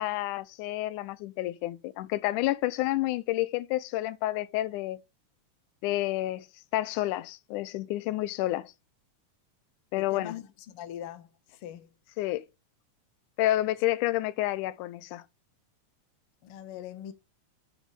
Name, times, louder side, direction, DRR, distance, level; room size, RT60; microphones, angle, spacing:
voice 1, 0.0-5.0 5.8-6.5 6.7-8.7 9.9-10.3 12.2-12.4 13.4-15.2, left 16 dB, 85° left, 2.1 m, -29 dB
voice 2, 10.1-11.9 16.4-17.1, left 10 dB, 65° left, 1.4 m, -41 dB
6.4 x 5.1 x 4.8 m
omnidirectional pair, 3.5 m